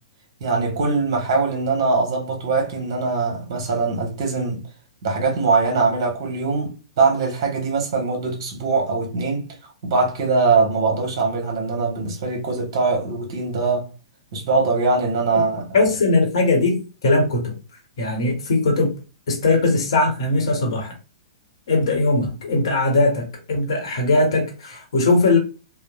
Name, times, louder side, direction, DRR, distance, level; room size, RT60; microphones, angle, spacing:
voice 1, 0.4-4.6 5.0-13.9 14.3-15.7, right 4 dB, 50° right, 0.9 m, -22 dB
voice 2, 15.7-17.5 18.0-19.0 19.3-20.9 21.7-25.4, left 2 dB, 55° left, 0.9 m, -20 dB
2.9 x 2.0 x 2.3 m
figure-of-eight pair, 105°, 3 cm